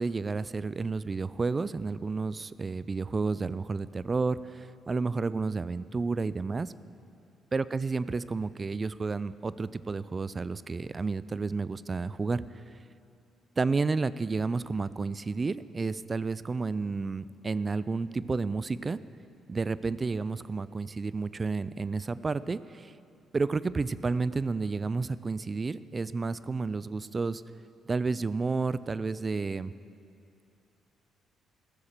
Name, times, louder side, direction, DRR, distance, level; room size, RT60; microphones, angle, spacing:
voice 1, 0.0-6.7 7.5-12.6 13.6-19.0 19.5-22.9 23.3-27.4 27.9-29.7, right 4 dB, 35° right, 17 dB, 0.4 m, -31 dB
15.0 x 6.5 x 7.3 m, 2.6 s
supercardioid pair, 60°, 0 cm